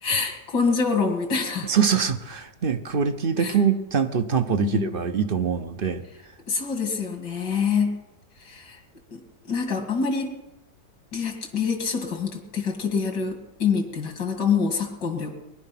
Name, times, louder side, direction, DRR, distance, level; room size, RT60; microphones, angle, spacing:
voice 1, 0.0-1.7 3.4-3.6 4.6-5.0 6.5-8.0 8.4-8.8 9.1-10.4 11.1-15.3, left 5 dB, 75° left, 4 dB, 2.9 m, -26 dB
voice 2, 1.6-6.0, right 6 dB, 45° right, 10 dB, 0.7 m, -24 dB
21.5 x 11.0 x 5.8 m, 1.0 s
omnidirectional pair, 1.9 m